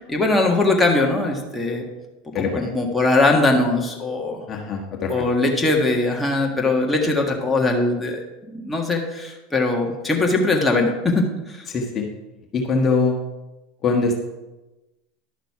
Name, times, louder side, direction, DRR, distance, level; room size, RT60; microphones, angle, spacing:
voice 1, 0.1-1.8 2.4-4.4 5.1-8.2 8.5-11.7, left 2 dB, 10° left, 0 dB, 1.7 m, -21 dB
voice 2, 2.3-2.6 4.5-5.1 11.7-12.0 12.5-13.2 13.8-14.2, left 4 dB, 35° left, 1 dB, 1.4 m, -22 dB
11.0 x 6.6 x 4.8 m, 1.1 s
hypercardioid pair, 100°, 0 cm